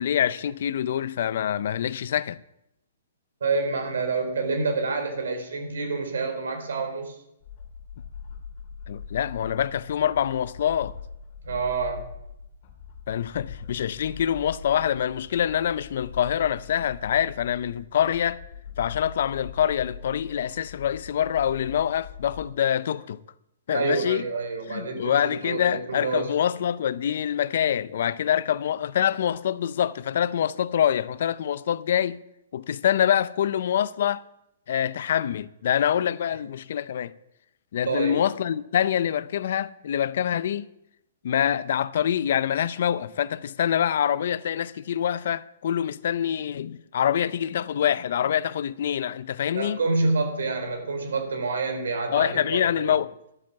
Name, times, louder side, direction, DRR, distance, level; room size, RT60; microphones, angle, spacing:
voice 1, 0.0-2.4 8.9-11.0 13.1-18.4 18.8-23.2 23.7-24.3 24.7-32.2 32.5-34.2 34.7-37.1 37.7-40.7 41.2-49.8 52.1-53.2, left 9 dB, 60° left, 0.6 m, -25 dB
voice 2, 3.4-7.2 11.4-12.0 23.7-26.3 37.9-38.2 49.5-52.9, right 4 dB, 85° right, 4.1 m, -28 dB
sound 1, 7.4-22.5, left 7 dB, 40° left, 1.9 m, -42 dB
12.0 x 9.0 x 7.4 m
hypercardioid pair, 160°, 0 cm